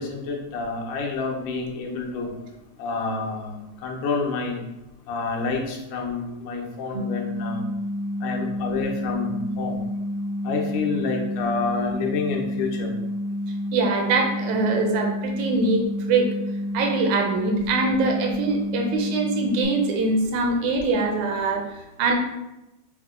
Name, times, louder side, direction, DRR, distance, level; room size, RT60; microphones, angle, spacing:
voice 1, 0.0-2.4 2.8-4.6 5.1-7.6 8.2-9.9 10.4-12.9, left 4 dB, 85° left, 0 dB, 2.2 m, -28 dB
sound 1, 6.9-19.6, left 1 dB, 40° right, 0.6 m, -29 dB
voice 2, 13.7-15.8 16.1-16.3 16.7-21.6 22.0-22.1, right 3 dB, 80° right, 2 dB, 1.9 m, -23 dB
6.0 x 2.1 x 3.6 m, 0.96 s
omnidirectional pair, 3.4 m